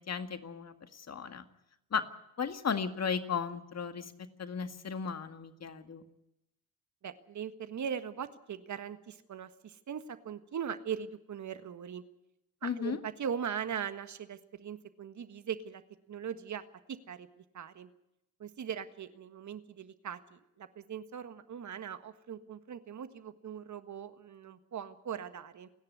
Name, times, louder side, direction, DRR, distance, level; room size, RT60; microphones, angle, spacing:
voice 1, 0.1-1.5 1.9-2.0 2.4-6.0 12.6-13.0, left 6 dB, 40° left, 9 dB, 2.0 m, -35 dB
voice 2, 7.0-12.0 12.6-15.8 16.1-16.6 16.9-17.3 17.5-17.9 18.4-25.7, right 8 dB, 50° right, 11 dB, 1.6 m, -40 dB
29.0 x 10.5 x 9.6 m, 0.86 s
hypercardioid pair, 50°, 38 cm